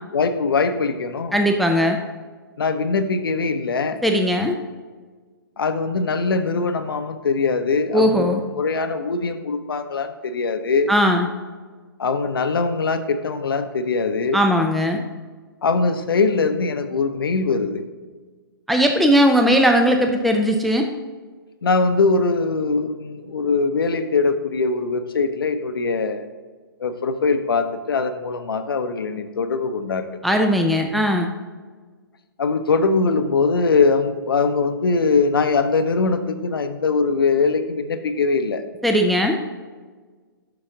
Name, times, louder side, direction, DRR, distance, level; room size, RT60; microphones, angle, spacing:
voice 1, 0.1-1.4 2.6-4.0 5.6-10.9 12.0-14.4 15.6-17.8 21.6-26.2 26.8-30.1 32.4-38.6, left 4 dB, 70° left, 9 dB, 0.7 m, -22 dB
voice 2, 1.3-2.0 4.0-4.6 7.9-8.4 10.9-11.3 14.3-15.0 18.7-20.9 30.2-31.3 38.8-39.4, equal, ahead, 3 dB, 0.3 m, -18 dB
6.7 x 5.8 x 3.7 m, 1.4 s
figure-of-eight pair, 125°, 12 cm